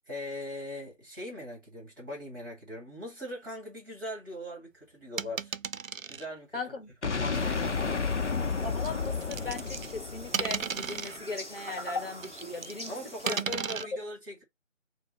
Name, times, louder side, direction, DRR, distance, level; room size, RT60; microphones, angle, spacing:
voice 1, 0.1-5.5 6.1-6.6 7.1-8.0 12.9-14.4, left 1 dB, 15° right, 1.6 m, -40 dB
sound 1, 5.2-6.3 7.3-7.4 8.8-10.0 10.3-11.2 12.2-12.9 13.3-13.8, right 6 dB, 90° right, 0.5 m, -34 dB
voice 2, 6.5-6.9 8.6-13.0 13.2-13.5 13.7-13.9, left 3 dB, 45° left, 1.1 m, -38 dB
sound 2, 7.0-11.0, left 5 dB, 65° left, 0.7 m, -31 dB
sound 3, 7.3-13.4, left 1 dB, 10° left, 1.2 m, -43 dB
4.6 x 2.2 x 4.0 m
figure-of-eight pair, 160°, 39 cm